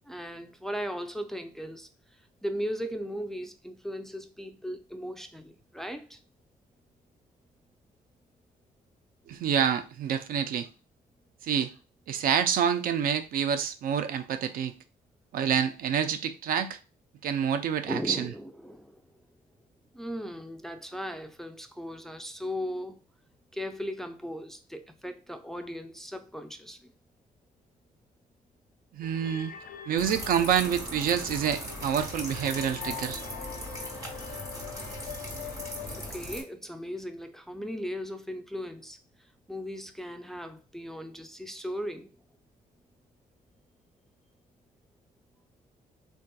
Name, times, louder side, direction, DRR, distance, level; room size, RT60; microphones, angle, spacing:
voice 1, 0.0-6.2 17.9-19.0 19.9-23.0 23.5-26.9 36.0-42.2, equal, ahead, 0.3 m, -37 dB
voice 2, 9.3-10.7 11.4-11.7 12.1-14.7 15.3-16.8 17.2-18.3 28.9-29.5 29.9-33.2, right 8 dB, 70° right, 0.4 m, -27 dB
sound 1, 29.0-36.1, left 9 dB, 70° left, 0.4 m, -43 dB
sound 2, 30.0-36.4, right 1 dB, 20° right, 1.2 m, -39 dB
3.4 x 2.6 x 2.2 m
cardioid pair, 100°, 15 cm